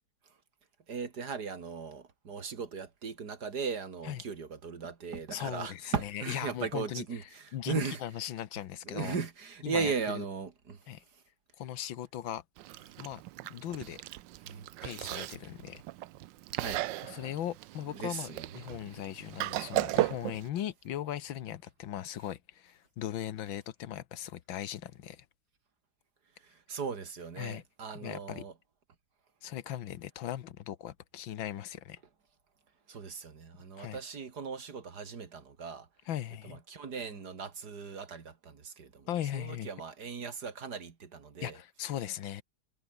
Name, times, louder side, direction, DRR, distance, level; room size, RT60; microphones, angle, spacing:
voice 1, 0.9-8.0 8.8-11.2 14.4-14.7 16.5-16.9 17.9-18.7 26.4-28.5 32.9-35.9 36.4-41.6, right 5 dB, 55° right, 2.6 m, -38 dB
voice 2, 5.3-7.0 7.5-9.2 9.6-10.2 10.9-11.0 11.6-12.4 13.0-13.2 13.5-14.0 14.8-15.8 17.0-25.3 27.4-27.6 28.0-28.5 29.4-32.0 33.8-34.0 36.1-36.6 39.1-39.7 41.4-42.4, left 11 dB, 85° left, 1.8 m, -38 dB
Chewing mastication, 12.6-20.5, right 16 dB, 80° right, 1.3 m, -36 dB
omnidirectional pair, 2.1 m